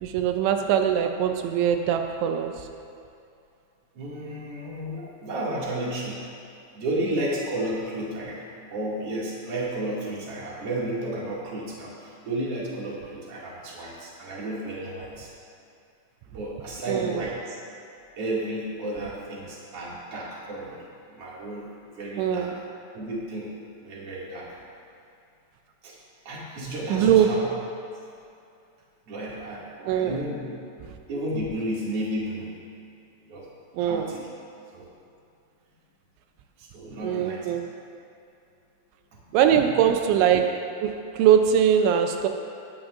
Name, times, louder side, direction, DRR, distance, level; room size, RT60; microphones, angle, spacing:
voice 1, 0.0-2.6 16.9-17.2 22.2-22.5 26.9-27.3 29.9-30.2 33.8-34.1 37.0-37.6 39.3-42.3, right 9 dB, 85° right, 6 dB, 3.0 m, -22 dB
voice 2, 3.9-6.2 6.7-8.4 8.7-15.3 16.3-17.6 18.2-20.8 21.1-21.7 21.9-22.5 22.9-23.5 23.8-24.5 25.8-26.0 26.2-27.5 29.1-30.5 31.1-32.5 33.2-33.5 33.8-34.3 34.7-34.9 36.6-37.6 39.3-39.7, right 1 dB, 40° right, -6 dB, 2.5 m, -32 dB
18.0 x 12.5 x 2.6 m, 2.6 s
omnidirectional pair, 5.3 m